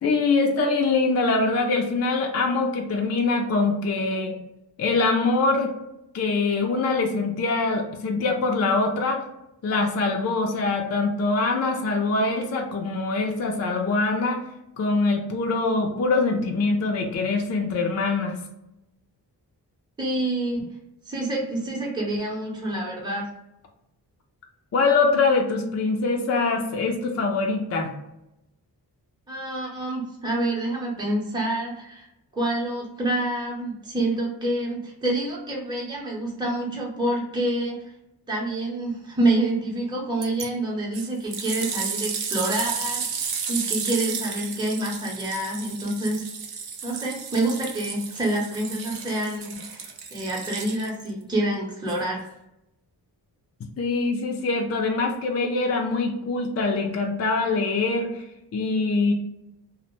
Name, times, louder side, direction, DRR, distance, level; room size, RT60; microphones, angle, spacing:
voice 1, 0.0-4.4 4.8-5.7 6.1-9.2 9.6-14.4 14.8-18.3 24.7-27.9 53.8-58.3 58.5-59.1, left 3 dB, 40° left, 2 dB, 0.4 m, -23 dB
voice 2, 20.0-20.6 21.0-23.3 29.3-32.1 32.3-37.8 38.3-46.2 46.8-52.3, right 1 dB, 10° right, -4 dB, 0.7 m, -27 dB
sound 1, 40.2-40.5 40.9-51.1 51.9-52.0, right 6 dB, 60° right, 0.6 m, -32 dB
2.5 x 2.0 x 3.0 m, 0.86 s
cardioid pair, 85°, 41 cm